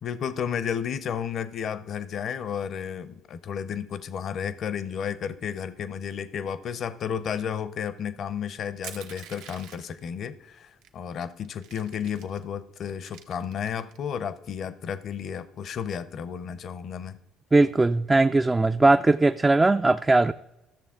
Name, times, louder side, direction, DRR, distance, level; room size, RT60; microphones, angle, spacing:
voice 1, 0.0-17.2, left 8 dB, 55° left, 15 dB, 0.6 m, -32 dB
Crushing, 8.8-10.0 10.8-10.9 11.2-12.4 12.9-14.0, right 8 dB, 80° right, 0.8 m, -45 dB
voice 2, 17.5-20.3, right 2 dB, 20° right, 9 dB, 0.3 m, -19 dB
13.0 x 6.7 x 3.7 m, 0.96 s
hypercardioid pair, 65°, 0 cm